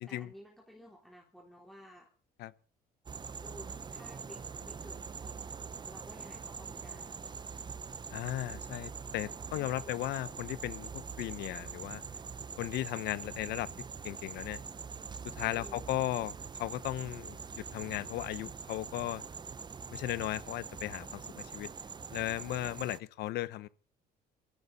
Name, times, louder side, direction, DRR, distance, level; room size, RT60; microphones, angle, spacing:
voice 1, 0.1-2.1 3.4-5.5 5.8-7.3 9.5-10.0 13.3-13.4 15.4-15.8, equal, ahead, 3.7 m, -54 dB
sound 1, 3.1-23.0, right 5 dB, 25° right, 0.8 m, -44 dB
voice 2, 8.1-12.0 12.6-13.7 14.0-14.6 15.4-16.3 16.6-19.2 19.9-21.7 22.1-23.7, left 15 dB, 80° left, 0.9 m, -36 dB
23.5 x 14.5 x 4.1 m
cardioid pair, 110°, 17 cm